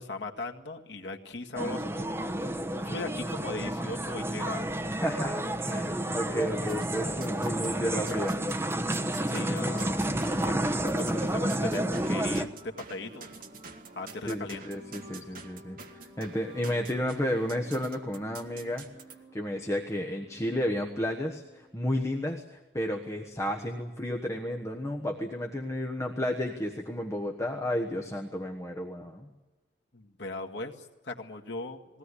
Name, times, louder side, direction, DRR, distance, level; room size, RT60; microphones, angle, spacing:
voice 1, 0.0-2.3 2.8-4.8 9.3-10.0 10.4-12.5 12.8-13.4 13.9-14.6 29.9-32.0, left 2 dB, 80° left, 2 dB, 1.8 m, -38 dB
sound 1, 1.5-12.4, right 1 dB, 15° right, 1.0 m, -30 dB
voice 2, 5.0-8.4 11.1-11.4 14.2-18.9 19.3-29.3, left 1 dB, 15° left, 2 dB, 1.3 m, -32 dB
sound 2, 6.7-7.7 8.1-19.2, right 5 dB, 50° right, 1.8 m, -49 dB
sound 3, 10.7-22.5, equal, 35° right, 5.5 m, -53 dB
20.5 x 17.5 x 9.9 m, 1.1 s
head